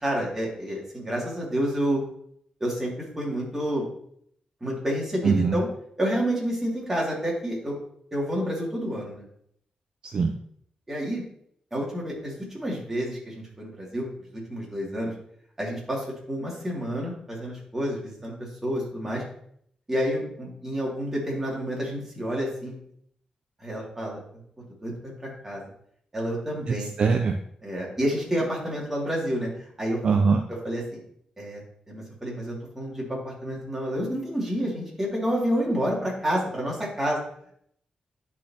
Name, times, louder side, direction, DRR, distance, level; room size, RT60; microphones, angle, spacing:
voice 1, 0.0-2.0 2.6-3.8 4.6-5.7 6.0-7.7 8.1-9.2 10.9-11.2 11.7-15.1 15.6-18.3 18.6-19.2 19.9-22.7 23.6-24.2 24.8-24.9 25.2-25.6 26.1-26.9 27.6-30.0 30.5-31.0 31.4-31.6 31.9-37.2, equal, 15° right, -4 dB, 2.4 m, -29 dB
voice 2, 5.2-5.5 10.1-10.3 26.7-27.3 30.0-30.4, right 5 dB, 50° right, 5 dB, 0.5 m, -22 dB
10.5 x 4.2 x 2.9 m, 0.67 s
wide cardioid pair, 130°, 2 cm